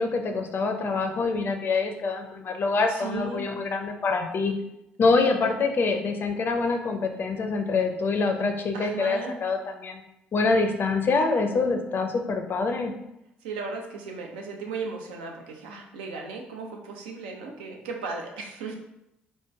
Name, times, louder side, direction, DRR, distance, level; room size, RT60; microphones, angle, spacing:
voice 1, 0.0-4.5 5.0-10.0 10.3-12.9, left 3 dB, 40° left, 4 dB, 0.5 m, -25 dB
voice 2, 2.9-3.4 8.7-9.4 13.4-18.8, right 4 dB, 75° right, 1 dB, 0.4 m, -36 dB
3.1 x 2.1 x 3.3 m, 0.86 s
figure-of-eight pair, 45°, 5 cm